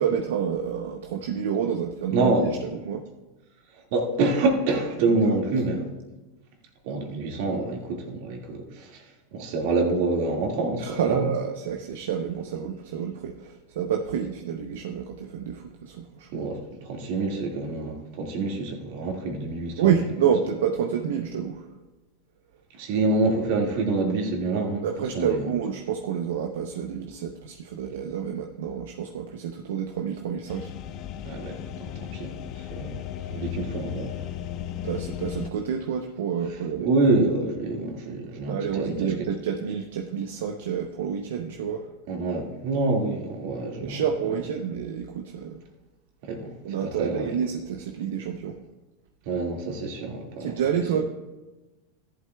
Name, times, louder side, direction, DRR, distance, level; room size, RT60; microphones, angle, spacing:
voice 1, 0.0-2.3 2.8-3.0 5.2-5.4 10.8-16.5 19.8-21.7 24.8-30.7 34.8-36.9 38.5-41.9 43.8-45.6 46.6-48.6 50.4-51.0, right 8 dB, 80° right, 4 dB, 0.7 m, -28 dB
voice 2, 2.1-2.6 3.9-5.9 6.8-9.0 9.3-11.4 16.3-20.3 22.8-25.5 31.2-34.1 36.5-39.3 42.1-44.5 46.2-46.5 46.8-47.4 49.3-51.0, right 2 dB, 60° right, 1 dB, 1.9 m, -27 dB
sound 1, 30.5-35.5, left 11 dB, 45° left, 0.5 m, -35 dB
14.0 x 11.0 x 2.3 m, 1.1 s
hypercardioid pair, 115°, 0 cm